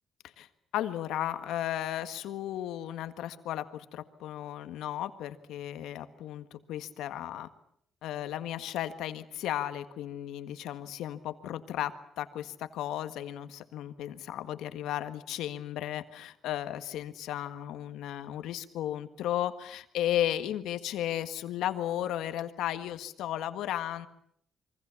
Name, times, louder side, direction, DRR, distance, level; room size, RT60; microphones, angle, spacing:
voice 1, 0.7-7.5 8.0-24.1, left 12 dB, 85° left, 10 dB, 1.6 m, -34 dB
27.0 x 24.0 x 7.2 m, 0.69 s
cardioid pair, 90°, 0 cm